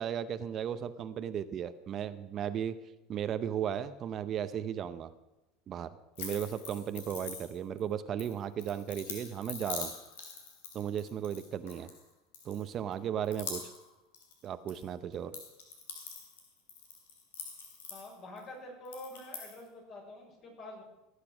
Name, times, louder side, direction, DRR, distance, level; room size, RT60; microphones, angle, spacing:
voice 1, 0.0-2.8 3.1-5.1 5.7-9.9 10.7-11.9 12.4-13.6 14.4-15.3, right 9 dB, 40° right, 12 dB, 0.7 m, -35 dB
sound 1, 6.1-7.8 8.2-12.0 12.3-12.9 13.2-14.8 15.1-18.4 18.8-19.6, left 5 dB, 90° left, 3.1 m, -44 dB
voice 2, 17.9-20.8, left 1 dB, 45° left, 0 dB, 5.9 m, -47 dB
17.0 x 8.4 x 6.1 m, 0.95 s
supercardioid pair, 110°, 0 cm